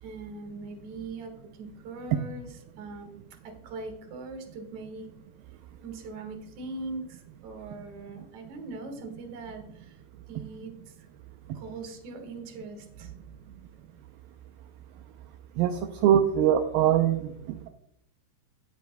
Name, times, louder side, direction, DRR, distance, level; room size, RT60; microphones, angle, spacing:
voice 1, 0.0-5.1 5.8-10.0 10.3-11.1 11.5-13.1, right 3 dB, 55° right, 4 dB, 2.4 m, -41 dB
voice 2, 15.6-17.7, right 10 dB, 80° right, 5 dB, 2.2 m, -23 dB
17.5 x 8.1 x 2.2 m, 0.74 s
omnidirectional pair, 4.6 m